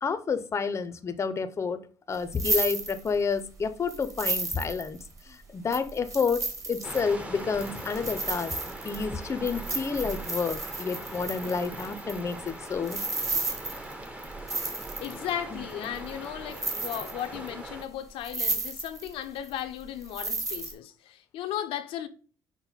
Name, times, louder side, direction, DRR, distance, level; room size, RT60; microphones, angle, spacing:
voice 1, 0.0-1.8 2.1-8.5 8.8-13.0 15.5-15.6, left 5 dB, 30° left, 0.5 m, -30 dB
sound 1, 2.1-3.4 3.9-5.2 5.7-15.3 15.8-16.3 16.5-17.5 17.8-17.9 18.2-19.1 19.4-20.7, right 3 dB, 30° right, 1.4 m, -33 dB
sound 2, 6.8-17.8, right 1 dB, 15° right, 0.7 m, -41 dB
voice 2, 15.0-22.1, left 11 dB, 80° left, 0.5 m, -36 dB
5.8 x 2.1 x 4.0 m
cardioid pair, 85°, 9 cm